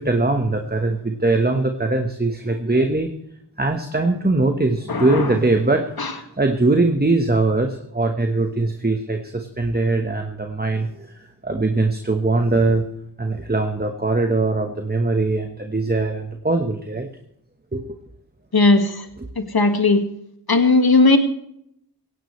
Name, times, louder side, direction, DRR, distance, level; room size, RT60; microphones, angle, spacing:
voice 1, 0.0-3.1 3.6-11.1 11.4-12.8 13.2-17.1 17.7-17.8, right 2 dB, 25° right, 5 dB, 1.4 m, -21 dB
voice 2, 4.9-5.3 6.0-6.1 18.5-19.0 19.4-20.0 20.5-21.2, left 3 dB, 65° left, 6 dB, 2.0 m, -17 dB
17.5 x 16.5 x 3.3 m, 0.74 s
wide cardioid pair, 50°, 40 cm